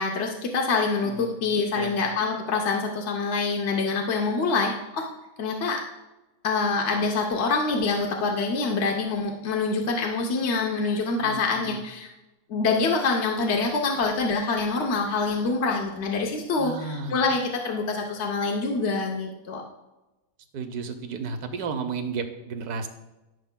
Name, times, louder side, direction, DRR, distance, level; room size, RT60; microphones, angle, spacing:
voice 1, 0.0-5.1 5.4-5.8 6.4-12.1 12.5-19.6, left 4 dB, 55° left, 0 dB, 1.0 m, -25 dB
voice 2, 1.0-1.4 1.7-1.9 11.2-11.8 16.6-17.2 20.5-22.9, right 5 dB, 85° right, 7 dB, 1.3 m, -33 dB
14.5 x 6.6 x 2.2 m, 1.0 s
omnidirectional pair, 1.6 m